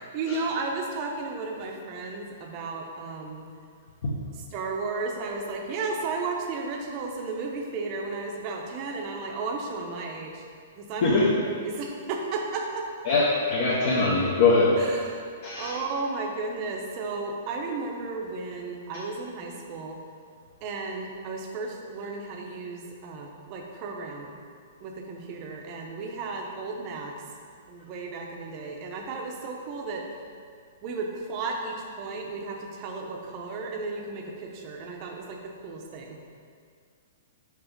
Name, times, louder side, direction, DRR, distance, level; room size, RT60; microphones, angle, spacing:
voice 1, 0.0-3.4 4.3-10.4 10.8-12.9 14.8-20.0 20.6-24.3 24.8-27.1 27.7-30.0 30.8-35.4 35.6-36.2, right 3 dB, 25° right, 1 dB, 0.6 m, -34 dB
voice 2, 13.1-14.7 15.4-15.7, left 3 dB, 45° left, -6 dB, 0.8 m, -22 dB
4.9 x 4.7 x 5.1 m, 2.2 s
hypercardioid pair, 175°, 0 cm